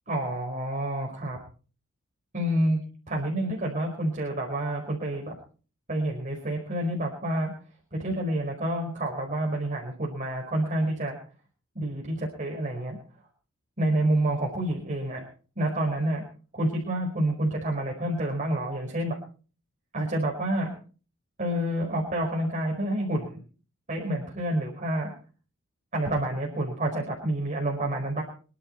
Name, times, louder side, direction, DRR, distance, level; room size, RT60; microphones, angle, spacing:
voice 1, 0.1-1.4 2.3-2.8 3.1-5.3 5.9-7.5 7.9-11.2 11.7-13.0 13.8-15.2 15.6-16.2 16.5-19.2 19.9-20.7 21.4-23.4 23.9-25.1 25.9-28.2, right 1 dB, 40° right, 0 dB, 5.0 m, -28 dB
26.0 x 11.5 x 4.5 m, 0.40 s
head